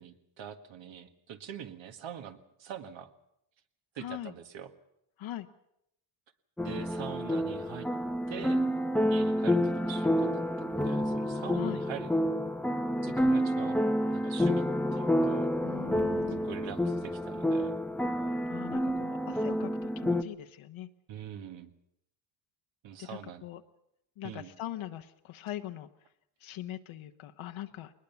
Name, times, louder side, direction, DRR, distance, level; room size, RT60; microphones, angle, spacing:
voice 1, 0.0-3.1 4.0-4.7 6.6-7.9 8.3-8.7 9.1-12.1 13.0-13.8 14.1-15.5 16.3-17.7 21.1-21.7 22.8-23.4 24.2-24.5, right 9 dB, 65° right, 8 dB, 1.8 m, -44 dB
voice 2, 4.0-4.3 5.2-5.5 11.6-11.8 15.6-16.5 18.5-20.9 23.0-23.6 24.2-25.9 26.4-27.9, left 13 dB, 70° left, 6 dB, 1.2 m, -41 dB
sound 1, 6.6-20.2, equal, 5° left, 0.7 m, -29 dB
21.0 x 20.0 x 7.1 m, 0.78 s
cardioid pair, 110°, 50 cm